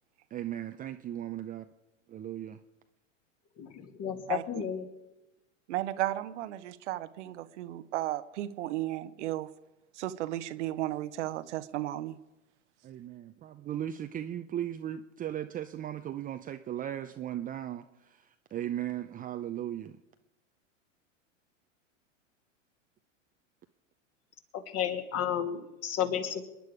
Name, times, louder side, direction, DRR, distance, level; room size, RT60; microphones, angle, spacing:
voice 1, 0.3-1.7 2.1-2.6 12.8-17.8 18.5-20.0, right 11 dB, 20° right, 8 dB, 0.6 m, -37 dB
voice 2, 3.6-4.9 24.5-26.4, left 9 dB, 40° left, 6 dB, 2.4 m, -32 dB
voice 3, 5.7-9.5 10.0-12.2, right 14 dB, 60° right, 12 dB, 1.0 m, -34 dB
27.0 x 10.5 x 5.0 m, 0.97 s
hypercardioid pair, 100°, 39 cm